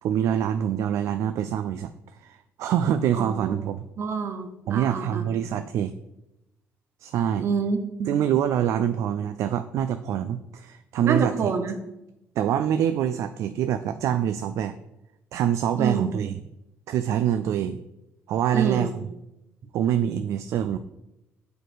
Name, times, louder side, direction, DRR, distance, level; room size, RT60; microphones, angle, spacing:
voice 1, 0.0-1.9 2.2-3.9 4.7-5.9 7.0-7.5 8.1-11.5 12.4-14.7 15.3-16.4 16.9-17.8 18.3-19.1 19.7-20.8, right 9 dB, 75° right, 11 dB, 0.4 m, -25 dB
voice 2, 3.2-3.6 4.0-5.3 7.4-8.1 11.0-11.8 15.8-16.1 18.5-18.9, right 5 dB, 55° right, 7 dB, 0.9 m, -27 dB
6.4 x 4.6 x 5.0 m, 0.89 s
cardioid pair, 105°, 5 cm